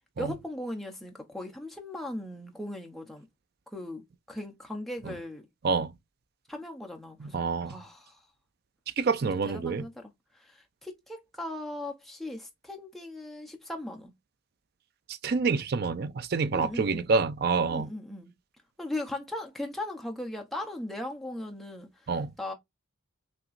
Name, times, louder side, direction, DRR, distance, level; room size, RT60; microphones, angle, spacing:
voice 1, 0.2-3.3 3.7-5.4 6.5-8.2 9.4-10.1 10.4-14.1 16.5-17.1 17.7-18.3 18.8-22.5, left 1 dB, ahead, 0.8 m, -38 dB
voice 2, 7.2-7.7 9.0-9.9 15.2-17.9 22.1-22.3, right 4 dB, 50° right, 0.4 m, -27 dB
5.7 x 3.0 x 2.5 m
head